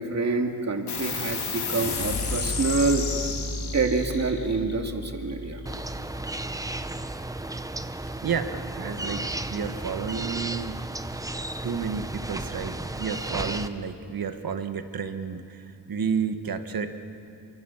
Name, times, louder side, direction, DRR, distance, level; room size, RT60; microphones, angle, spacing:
voice 1, 0.0-3.1 3.7-5.6, right 3 dB, 40° right, 3 dB, 2.3 m, -26 dB
sound 1, 0.9-7.8, left 3 dB, 70° left, 3.6 m, -32 dB
sound 2, 5.7-13.7, right 2 dB, 10° right, 0.7 m, -34 dB
voice 2, 8.2-9.2 9.5-10.8 11.6-17.0, right 6 dB, 55° right, 8 dB, 1.5 m, -31 dB
28.0 x 24.5 x 7.3 m, 2.6 s
wide cardioid pair, 145°, 41 cm